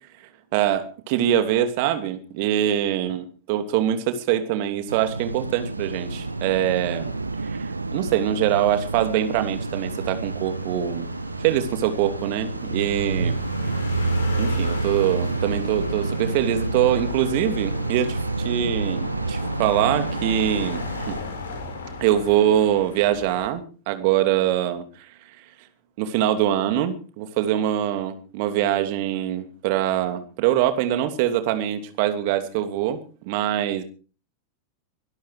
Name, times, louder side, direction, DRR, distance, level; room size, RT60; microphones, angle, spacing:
voice 1, 0.5-7.1 7.4-11.1 11.4-13.4 14.4-21.2 22.0-25.1 26.0-33.8, right 11 dB, 45° right, 8 dB, 2.9 m, -23 dB
sound 1, 4.9-21.2, right 3 dB, 80° right, 0.7 m, -29 dB
sound 2, 5.8-23.5, left 4 dB, 70° left, 4.5 m, -37 dB
23.5 x 12.5 x 4.9 m, 0.39 s
figure-of-eight pair, 90°, 0 cm